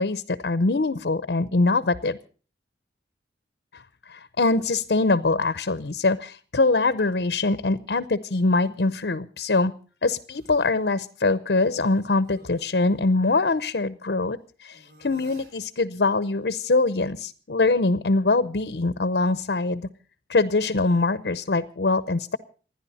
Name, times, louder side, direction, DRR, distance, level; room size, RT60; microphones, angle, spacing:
voice 1, 0.0-2.2 3.7-9.7 10.0-19.9 20.3-22.4, left 3 dB, 65° left, 14 dB, 0.7 m, -23 dB
sound 1, 10.3-10.9 11.6-13.7 14.7-15.6, right 2 dB, 55° right, 7.1 m, -55 dB
27.5 x 10.5 x 4.2 m, 0.40 s
head